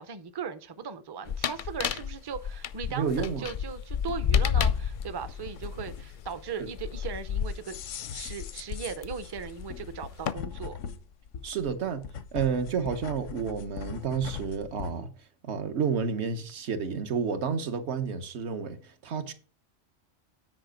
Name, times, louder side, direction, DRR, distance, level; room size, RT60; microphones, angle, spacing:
voice 1, 0.0-7.8 8.1-10.8, right 6 dB, 30° right, 0.5 m, -38 dB
sound 1, 1.3-9.0 9.8-10.3, left 8 dB, 55° left, 0.5 m, -30 dB
voice 2, 2.9-3.5 11.4-12.0 12.3-15.1 15.4-19.3, right 6 dB, 65° right, 1.2 m, -30 dB
sound 2, 4.7-15.0, left 7 dB, 85° left, 1.1 m, -41 dB
9.6 x 5.0 x 5.0 m
omnidirectional pair, 1.2 m